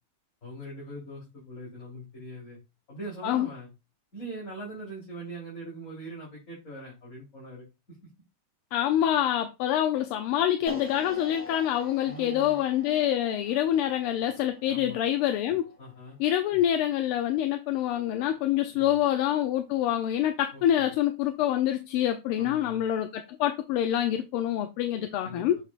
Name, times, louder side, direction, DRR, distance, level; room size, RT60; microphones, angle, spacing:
voice 1, 0.4-2.6 2.9-3.7 4.1-7.6 12.0-12.6 14.7-15.0 15.8-16.2 18.7-19.0 20.5-20.9 22.4-22.8 25.2-25.4, right 1 dB, 35° left, 3.9 m, -42 dB
voice 2, 8.7-15.6 16.2-25.6, left 11 dB, 85° left, 1.6 m, -26 dB
sound 1, 10.7-16.8, left 2 dB, 5° left, 2.9 m, -45 dB
7.6 x 5.2 x 2.5 m
omnidirectional pair, 2.4 m